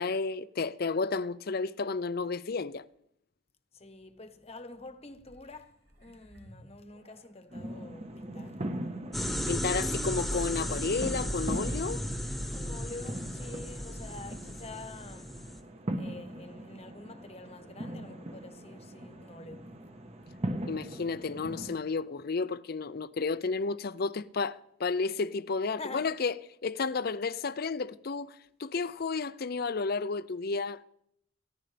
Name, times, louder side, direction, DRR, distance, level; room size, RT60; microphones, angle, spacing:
voice 1, 0.0-2.8 9.5-12.0 20.7-26.3 26.6-28.3 28.6-30.8, left 4 dB, 50° left, 0.5 m, -32 dB
voice 2, 3.7-8.6 11.8-11.9 12.3-15.4 15.9-19.7 25.8-26.1, left 3 dB, 30° left, 1.1 m, -47 dB
sound 1, 5.1-7.7 8.3-8.4, equal, 75° right, 6.2 m, -58 dB
sound 2, 7.5-21.8, right 1 dB, 35° right, 1.2 m, -40 dB
sound 3, 9.1-15.6, equal, ahead, 1.3 m, -35 dB
28.5 x 15.0 x 3.4 m
head